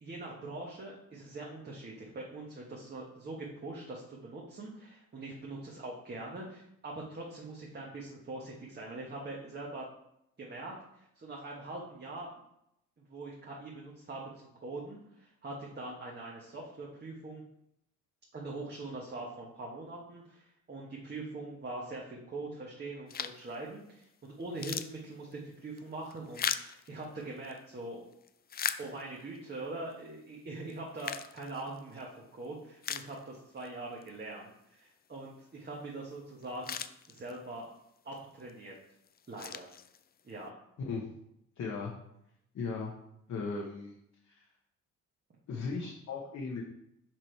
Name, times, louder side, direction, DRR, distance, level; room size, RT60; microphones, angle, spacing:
voice 1, 0.0-9.8 10.4-12.3 13.1-17.4 18.3-28.0 28.8-36.8 37.1-37.7 38.0-38.7 39.3-39.7 40.2-40.5, right 2 dB, 35° right, -3 dB, 1.4 m, -43 dB
sound 1, 23.1-23.5 24.0-24.1 24.4-27.6 28.1-29.4 29.9-30.0 30.7-32.0 32.4-32.5 32.8-33.7 34.0-34.1 36.1-36.2 36.4-37.6 38.2-38.5 39.0-40.3, left 8 dB, 30° left, 0.4 m, -39 dB
voice 2, 41.6-41.9 42.5-42.9 43.3-43.9 44.2-44.5 45.5-46.6, left 4 dB, 65° left, -2 dB, 1.2 m, -37 dB
6.0 x 5.0 x 4.6 m, 0.80 s
cardioid pair, 90°, 30 cm